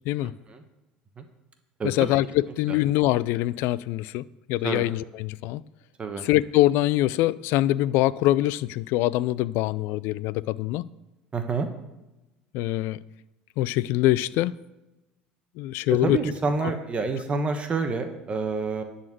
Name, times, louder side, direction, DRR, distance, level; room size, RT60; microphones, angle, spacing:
voice 1, 0.2-0.6 1.2-1.3 1.8-2.1 2.7-2.8 4.6-4.9 6.0-6.2 11.3-11.7 15.9-18.8, right 4 dB, 30° right, 6 dB, 1.1 m, -28 dB
voice 2, 1.8-5.6 6.2-10.8 12.5-13.0 13.6-14.5 15.6-16.2 16.6-16.7, left 16 dB, 70° left, 20 dB, 0.3 m, -24 dB
10.5 x 4.2 x 7.7 m, 1.0 s
supercardioid pair, 90°, 4 cm